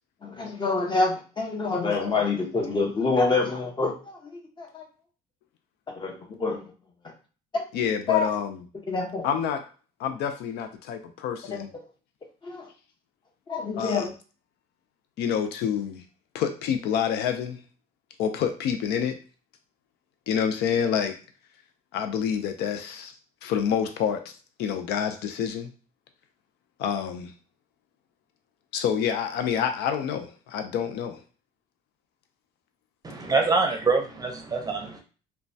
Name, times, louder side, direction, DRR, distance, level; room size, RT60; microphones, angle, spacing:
voice 1, 0.2-4.2 4.6-4.8 5.9-6.6 7.5-7.6 8.1-8.3 8.9-9.3 12.4-12.7 13.5-14.1, left 4 dB, 25° left, 1 dB, 0.8 m, -26 dB
voice 2, 1.9-2.2 7.7-8.6 9.2-9.6 10.0-11.7 13.8-14.1 15.2-16.0 16.3-17.6 18.2-19.2 20.3-21.1 21.9-23.1 23.4-24.3 24.6-25.7 26.8-27.3 28.7-31.2, left 8 dB, 80° left, 7 dB, 0.4 m, -28 dB
voice 3, 33.0-35.0, right 4 dB, 20° right, 3 dB, 0.6 m, -25 dB
3.0 x 2.2 x 2.6 m, 0.36 s
cardioid pair, 110°, 17 cm